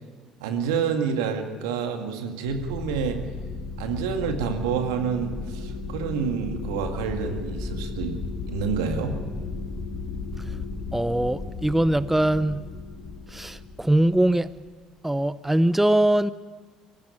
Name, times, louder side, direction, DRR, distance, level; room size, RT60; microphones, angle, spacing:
voice 1, 0.4-3.2 3.8-8.2 8.5-9.2, right 6 dB, 75° right, 5 dB, 2.1 m, -28 dB
sound 1, 2.5-14.7, left 3 dB, 40° left, 2.9 m, -35 dB
voice 2, 10.9-12.6 13.3-14.5 15.0-16.3, right 1 dB, 10° right, 16 dB, 0.7 m, -22 dB
23.0 x 15.0 x 9.8 m, 1.5 s
hypercardioid pair, 55°, 3 cm